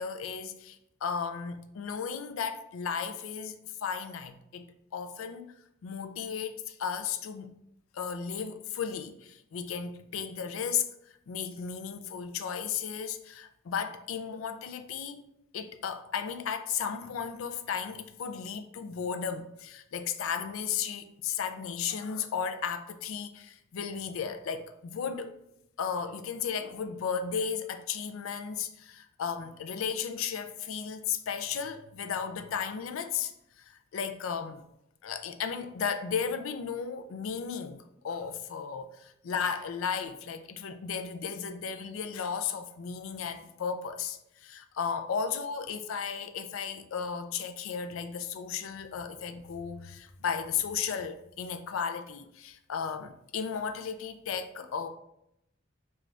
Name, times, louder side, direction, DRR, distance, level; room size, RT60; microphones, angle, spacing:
voice 1, 0.0-5.5 5.8-7.5 7.9-10.9 11.3-15.2 15.5-25.3 25.8-34.6 35.0-54.9, left 7 dB, 85° left, 0.4 m, -35 dB
4.8 x 2.4 x 3.3 m
head